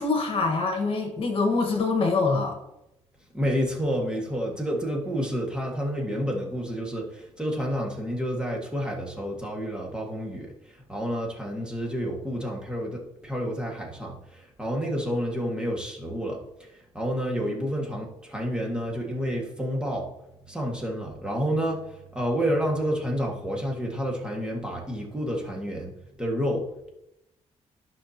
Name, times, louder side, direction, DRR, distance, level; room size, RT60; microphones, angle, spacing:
voice 1, 0.0-2.6, left 3 dB, 50° left, 3 dB, 1.6 m, -24 dB
voice 2, 3.3-16.4 16.9-20.1 20.5-25.9 26.2-26.9, equal, 5° right, -1 dB, 1.9 m, -29 dB
13.5 x 5.9 x 2.9 m, 0.87 s
cardioid pair, 120°, 12 cm